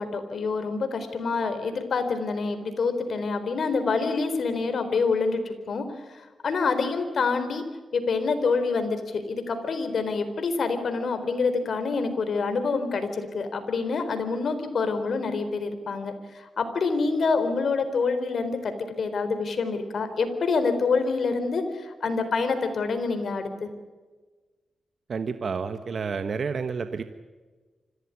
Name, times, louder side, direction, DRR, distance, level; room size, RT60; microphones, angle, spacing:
voice 1, 0.0-5.8 6.4-7.6 7.9-23.7, left 4 dB, 65° left, 9 dB, 4.0 m, -26 dB
voice 2, 25.1-27.0, right 5 dB, 60° right, 9 dB, 1.3 m, -30 dB
25.5 x 16.0 x 9.7 m, 1.3 s
cardioid pair, 75°, 0 cm